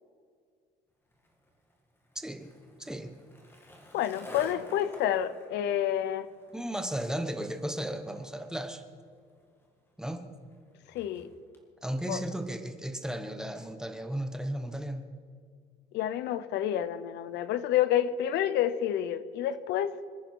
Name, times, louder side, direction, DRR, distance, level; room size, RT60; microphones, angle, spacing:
Skateboard, 1.1-11.6, equal, 15° left, 1.9 m, -52 dB
voice 1, 2.1-2.5 2.8-3.1 6.5-8.8 10.0-10.3 11.8-15.1, right 1 dB, 5° right, 0.9 m, -35 dB
voice 2, 3.9-6.3 10.9-11.3 12.1-12.2 15.9-20.0, left 11 dB, 85° left, 0.8 m, -29 dB
26.5 x 10.0 x 4.7 m
cardioid pair, 170°, 18 cm